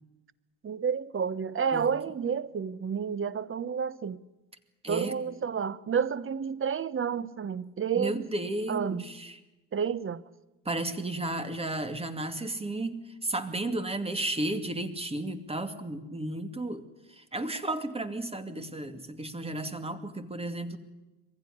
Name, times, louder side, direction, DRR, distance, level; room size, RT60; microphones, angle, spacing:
voice 1, 0.6-4.2 4.9-8.3 8.7-9.0 9.7-10.2, right 7 dB, 35° right, 1.0 m, -30 dB
voice 2, 4.8-5.1 8.0-9.4 10.6-20.8, right 1 dB, 15° right, 2.5 m, -33 dB
22.5 x 15.5 x 10.0 m
cardioid pair, 90°, 36 cm